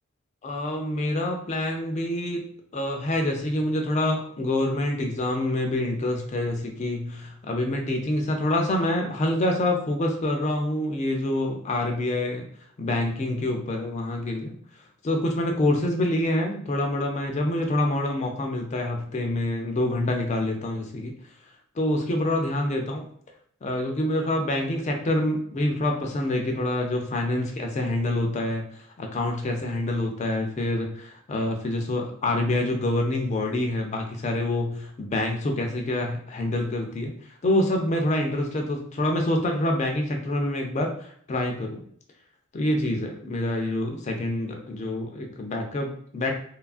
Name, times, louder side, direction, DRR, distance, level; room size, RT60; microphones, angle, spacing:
voice 1, 0.4-2.4 2.7-12.5 12.8-14.5 15.0-21.1 21.8-23.0 23.6-37.1 37.4-41.8 42.5-46.3, left 1 dB, 30° left, 2 dB, 0.3 m, -26 dB
2.9 x 2.3 x 2.4 m, 0.62 s
head